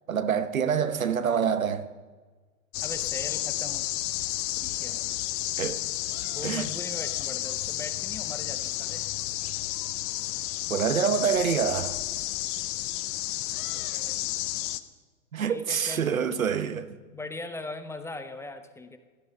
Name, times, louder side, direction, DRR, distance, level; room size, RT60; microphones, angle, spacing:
voice 1, 0.1-1.9 5.6-5.8 6.4-6.7 10.7-12.0 15.3-16.9, right 7 dB, 80° right, 1.0 m, -26 dB
voice 2, 0.9-1.5 2.8-3.8 4.6-5.2 6.3-9.1 13.7-14.3 15.4-16.1 17.1-19.0, left 2 dB, 5° left, 0.9 m, -40 dB
sound 1, 2.7-14.8, left 15 dB, 40° left, 0.8 m, -31 dB
16.5 x 12.5 x 5.5 m
figure-of-eight pair, 105°, 40 cm